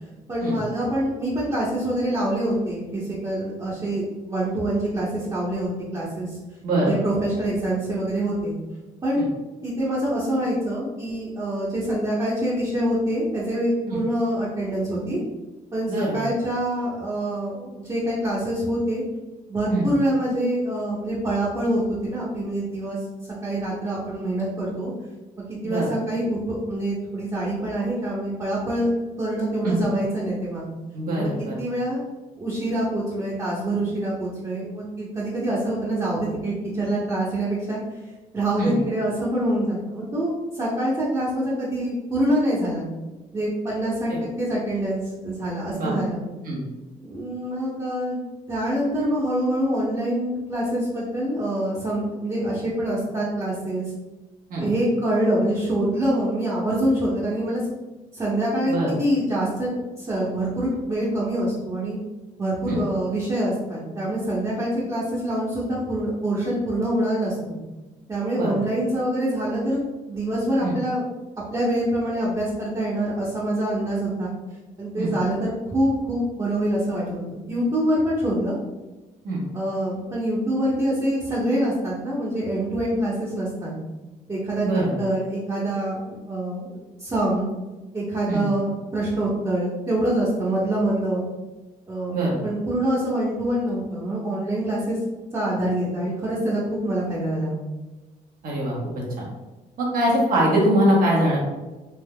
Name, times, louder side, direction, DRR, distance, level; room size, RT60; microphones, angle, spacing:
voice 1, 0.3-6.3 6.8-8.5 9.0-9.3 9.6-15.2 15.7-19.0 19.5-23.0 23.4-24.9 25.6-28.9 29.2-30.6 31.1-31.3 31.6-32.0 32.4-37.8 38.3-40.3 40.6-42.9 43.3-46.2 47.0-48.2 48.5-53.9 54.5-57.6 58.1-59.7 60.0-62.0 62.4-67.6 68.1-69.8 70.1-71.0 71.5-74.3 74.8-78.6 79.5-83.7 84.3-87.5 87.9-91.2 91.9-95.0 95.3-97.5, right 1 dB, 25° right, -8 dB, 0.9 m, -25 dB
voice 2, 6.6-7.0 9.2-9.3 13.9-14.0 15.9-16.2 19.7-19.9 25.6-25.9 29.6-29.7 30.9-31.6 38.6-38.8 44.1-44.2 45.8-45.9 46.4-46.6 54.5-54.7 58.7-58.9 62.7-62.8 68.4-68.5 70.6-70.7 75.0-75.1 79.2-79.4 84.6-84.9 88.3-88.4 92.1-92.4 98.4-99.2 99.8-101.4, right 1 dB, 70° right, -4 dB, 1.1 m, -23 dB
3.5 x 2.8 x 2.2 m, 1.1 s
cardioid pair, 85°, 15 cm